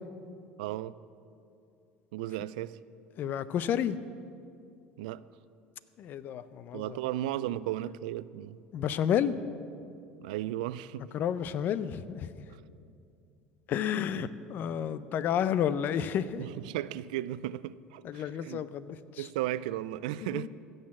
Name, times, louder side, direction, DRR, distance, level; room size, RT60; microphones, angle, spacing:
voice 1, 0.6-1.0 2.1-2.8 5.0-5.2 6.7-8.6 10.2-11.1 12.5-12.6 14.2-14.3 16.4-18.6 19.2-20.5, right 14 dB, 85° right, 17 dB, 0.3 m, -35 dB
voice 2, 3.2-4.0 6.0-7.0 8.7-9.4 11.1-12.3 13.7-16.4 18.0-19.3 20.2-20.5, left 9 dB, 50° left, 15 dB, 0.6 m, -31 dB
16.0 x 6.5 x 7.3 m, 2.5 s
supercardioid pair, 100°, 4 cm